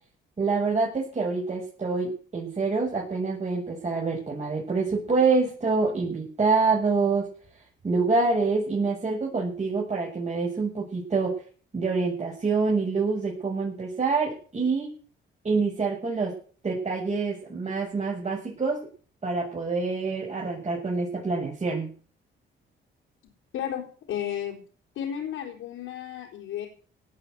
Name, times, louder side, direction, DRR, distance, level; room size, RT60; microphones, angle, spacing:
voice 1, 0.4-7.3 7.8-11.3 11.7-14.9 15.4-16.3 16.6-18.9 19.2-21.9, right 4 dB, 35° right, -3 dB, 7.3 m, -26 dB
voice 2, 23.5-24.6 24.9-26.7, left 10 dB, 85° left, -1 dB, 4.3 m, -33 dB
18.0 x 7.9 x 8.1 m, 0.41 s
cardioid pair, 90°, 20 cm